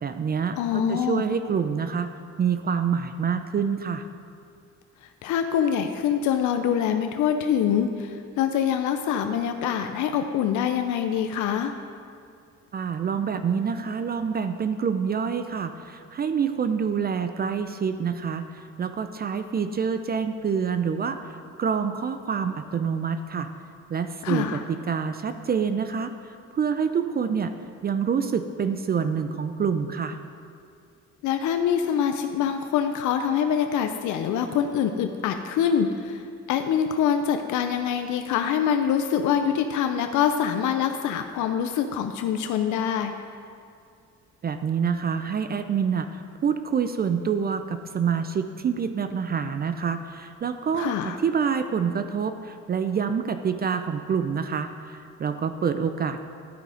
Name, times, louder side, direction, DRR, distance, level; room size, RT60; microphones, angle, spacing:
voice 1, 0.0-2.1 2.4-4.1 12.7-23.5 23.9-27.5 27.8-30.2 44.4-56.2, right 6 dB, 30° right, 9 dB, 0.4 m, -27 dB
voice 2, 0.6-1.2 5.2-11.7 24.2-24.6 31.2-36.2 36.5-43.1 50.8-51.2, left 8 dB, 75° left, 6 dB, 0.5 m, -25 dB
12.0 x 4.8 x 3.8 m, 2.3 s
cardioid pair, 90°, 30 cm